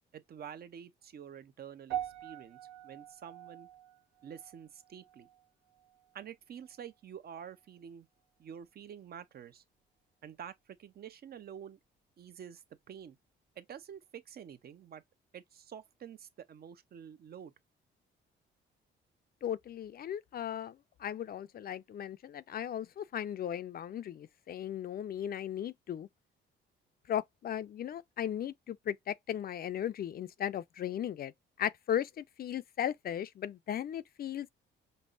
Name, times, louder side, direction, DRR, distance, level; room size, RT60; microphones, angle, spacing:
voice 1, 0.1-2.6 2.8-3.7 4.2-5.3 6.1-8.1 8.4-9.6 10.2-11.8 12.2-13.2 13.6-15.0 15.3-17.5, right 8 dB, 50° right, 0.6 m, -48 dB
sound 1, 1.9-6.3 6.6-6.9 7.6-7.7, right 11 dB, 85° right, 1.4 m, -44 dB
voice 2, 19.4-26.1 27.1-31.3 31.6-34.5, left 10 dB, 50° left, 0.4 m, -37 dB
5.3 x 2.0 x 2.4 m
cardioid pair, 90°, 20 cm